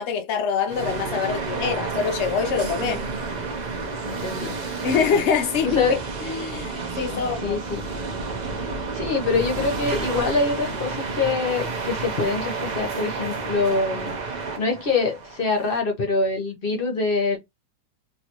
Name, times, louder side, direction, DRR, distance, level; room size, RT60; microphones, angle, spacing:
voice 1, 0.0-3.1 4.8-6.0 6.2-7.6, left 6 dB, 70° left, 0.6 m, -24 dB
sound 1, 0.7-15.8, right 4 dB, 80° right, 0.4 m, -30 dB
voice 2, 4.0-4.6 4.9-5.2 5.6-6.0 7.4-7.8 8.9-14.1 14.6-17.4, left 4 dB, 40° left, 0.8 m, -25 dB
3.2 x 2.7 x 2.9 m
omnidirectional pair, 1.9 m